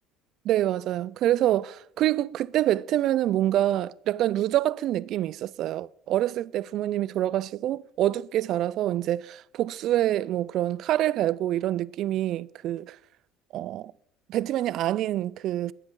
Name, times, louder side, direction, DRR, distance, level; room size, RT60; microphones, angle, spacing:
voice 1, 0.4-13.0 13.5-13.9 14.3-15.7, right 13 dB, 60° right, 0.4 m, -26 dB
22.0 x 7.6 x 3.8 m
hypercardioid pair, 70°, 0 cm